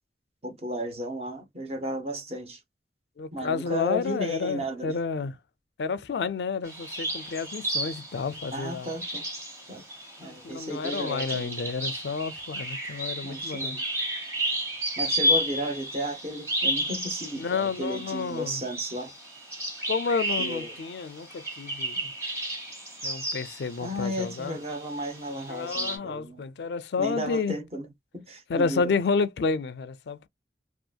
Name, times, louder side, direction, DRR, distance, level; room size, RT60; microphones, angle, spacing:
voice 1, 0.4-2.6 3.3-5.0 8.5-9.2 9.7-9.8 10.2-11.6 13.2-13.8 15.0-19.1 20.4-20.8 23.8-26.4 27.0-28.9, equal, 35° right, 0.8 m, -34 dB
voice 2, 3.2-5.3 5.8-8.9 10.2-13.8 17.4-18.6 19.9-22.1 23.0-24.6 25.5-27.6 28.5-30.3, left 5 dB, 75° left, 0.4 m, -30 dB
sound 1, 6.6-24.4 24.7-26.0, equal, 15° right, 1.2 m, -32 dB
2.7 x 2.4 x 2.2 m
head